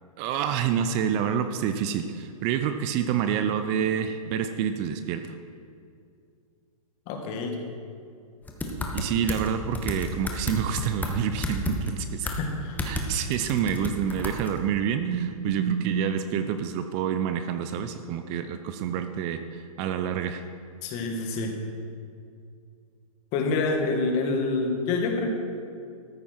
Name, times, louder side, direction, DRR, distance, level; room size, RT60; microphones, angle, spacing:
voice 1, 0.2-5.4 8.9-12.3 12.9-20.4, right 8 dB, 35° right, 8 dB, 0.6 m, -28 dB
voice 2, 7.1-7.6 12.2-12.8 20.8-21.5 23.3-25.3, left 3 dB, 35° left, 3 dB, 1.9 m, -27 dB
sound 1, 8.5-9.5 9.7-11.1 11.4-11.9 12.3-12.4 12.8-13.1 13.3-14.6, left 2 dB, 10° left, 1.2 m, -31 dB
13.5 x 9.8 x 4.6 m, 2.4 s
hypercardioid pair, 120°, 19 cm